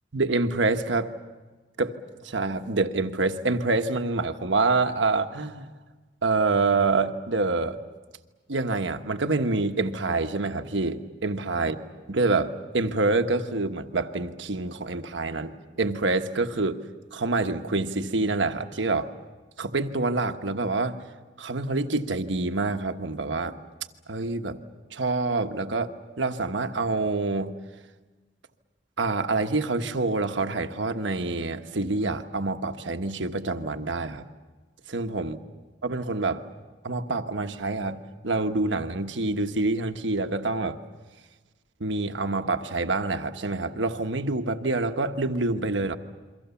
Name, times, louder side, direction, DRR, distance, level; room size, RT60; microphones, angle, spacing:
voice 1, 0.1-1.1 1.8-1.9 2.2-5.7 6.2-7.8 8.5-11.7 12.1-16.8 17.1-19.1 19.6-21.0 21.4-23.6 24.1-24.6 24.9-25.9 26.2-27.5 29.0-34.2 34.9-35.4 35.8-36.4 36.8-40.8 41.8-46.0, right 3 dB, 85° right, 7 dB, 1.2 m, -26 dB
28.5 x 23.5 x 7.1 m, 1.3 s
head